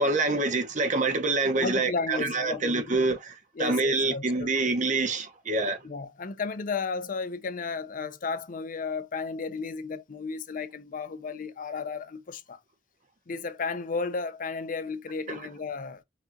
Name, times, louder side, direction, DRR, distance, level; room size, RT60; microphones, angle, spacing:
voice 1, 0.0-3.3 3.6-5.8 15.3-15.4, right 3 dB, 45° right, 0.9 m, -26 dB
voice 2, 1.6-3.0 3.6-4.5 5.8-12.6 13.3-16.0, left 4 dB, 50° left, 0.5 m, -33 dB
5.9 x 2.4 x 2.7 m
head